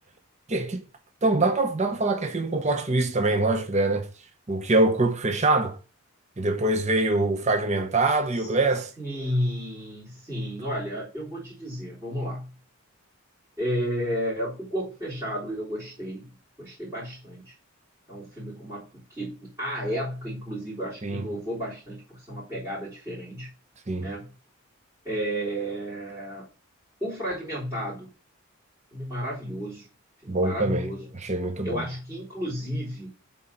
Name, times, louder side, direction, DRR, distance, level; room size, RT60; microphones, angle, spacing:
voice 1, 0.5-0.8 1.2-4.1 4.5-5.8 6.4-8.9 21.0-21.3 23.9-24.1 30.3-30.9 31.1-31.9, right 2 dB, 35° right, 0.8 m, -24 dB
voice 2, 9.0-12.5 13.6-17.5 18.1-23.5 24.0-24.3 25.0-26.5 27.0-28.1 28.9-29.9 30.2-31.0 31.6-33.1, equal, 15° right, 3.9 m, -32 dB
8.0 x 3.9 x 5.8 m
head